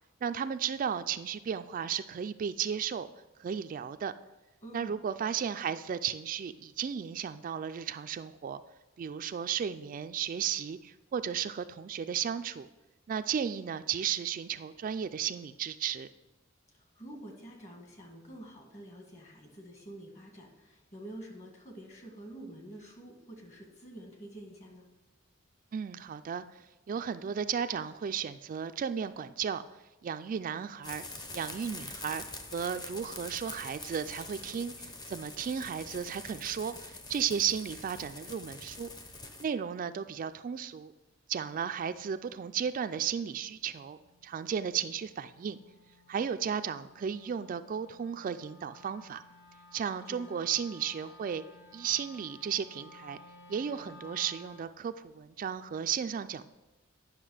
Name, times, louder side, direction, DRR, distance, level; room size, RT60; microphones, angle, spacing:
voice 1, 0.2-3.1 3.4-4.1 4.7-8.6 9.0-12.7 13.1-16.1 25.7-29.6 30.0-31.0 31.3-32.2 32.5-38.9 39.4-40.9 41.3-45.6 46.1-49.2 49.7-51.4 51.7-53.2 53.5-56.5, right 8 dB, 45° right, 10 dB, 0.3 m, -34 dB
voice 2, 4.6-5.0 16.7-24.9 50.1-50.3, right 1 dB, 35° left, 1 dB, 1.9 m, -48 dB
sound 1, 30.8-39.4, left 2 dB, 20° left, 0.7 m, -45 dB
Wind instrument woodwind instrument, 43.2-54.8, left 2 dB, 65° left, 1.0 m, -56 dB
9.8 x 6.0 x 4.9 m, 1.1 s
head